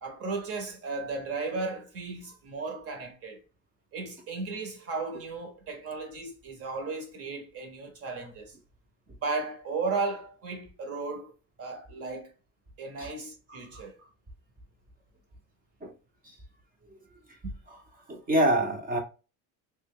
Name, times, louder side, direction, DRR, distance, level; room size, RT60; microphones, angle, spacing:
voice 1, 0.0-3.4 3.9-8.5 9.2-11.3 11.6-12.3 12.8-13.9, right 4 dB, 40° right, 0.9 m, -35 dB
voice 2, 13.5-13.8 15.8-15.9 16.2-16.3 16.9-17.0 17.4-17.8 18.1-19.0, right 1 dB, 20° right, 0.7 m, -28 dB
3.3 x 2.2 x 3.5 m
cardioid pair, 155°, 39 cm